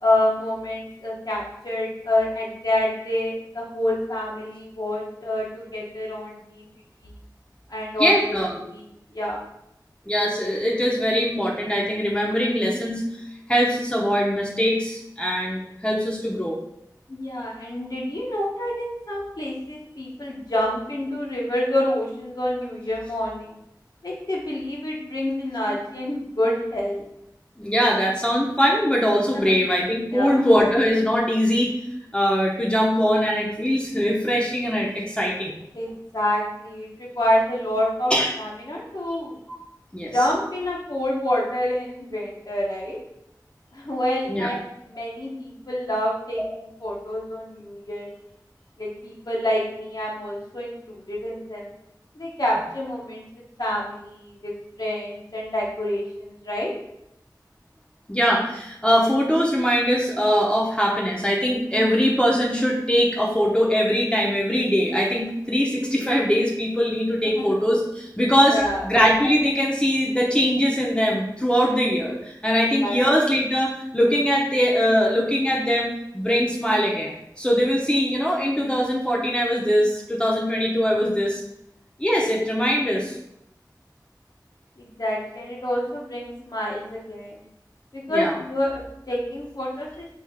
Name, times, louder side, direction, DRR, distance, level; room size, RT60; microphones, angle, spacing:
voice 1, 0.0-6.7 7.0-7.1 7.7-8.3 8.7-8.9 9.1-9.4 12.5-12.6 17.1-23.5 24.0-27.0 29.3-29.5 30.1-30.4 35.7-38.1 38.4-39.4 40.1-43.0 43.7-44.6 44.9-48.1 48.8-51.7 52.1-53.2 53.6-56.7 67.4-67.5 68.5-68.8 72.8-73.0 84.8-87.4 87.9-90.1, left 1 dB, 60° left, -4 dB, 0.7 m, -27 dB
voice 2, 8.0-8.6 10.1-13.0 13.5-16.6 25.7-25.8 27.6-31.7 32.1-35.5 38.1-38.3 39.9-40.1 44.3-44.5 58.1-68.6 68.8-81.4 82.0-83.2 88.1-88.3, equal, 15° left, -3 dB, 0.6 m, -22 dB
3.3 x 2.4 x 3.5 m, 0.80 s
wide cardioid pair, 40°, 8 cm